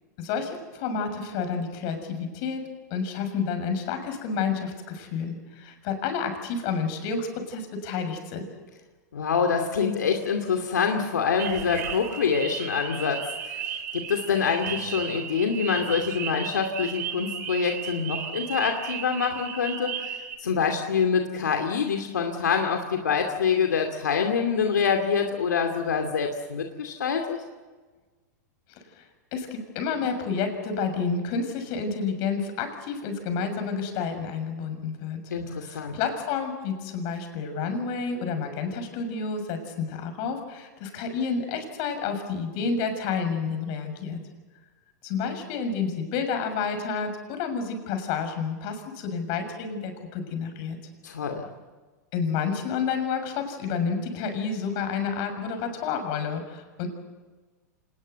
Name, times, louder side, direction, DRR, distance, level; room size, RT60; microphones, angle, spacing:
voice 1, 0.2-2.6 2.9-8.4 29.0-29.1 29.3-35.2 35.6-44.2 45.0-50.8 52.1-56.9, left 5 dB, 50° left, 6 dB, 6.6 m, -30 dB
voice 2, 9.1-27.4 35.3-36.0 51.0-51.5, left 6 dB, 90° left, 4 dB, 2.6 m, -26 dB
sound 1, 11.4-20.4, right 8 dB, 75° right, 3.3 m, -35 dB
27.0 x 20.0 x 8.1 m, 1.3 s
hypercardioid pair, 115°, 9 cm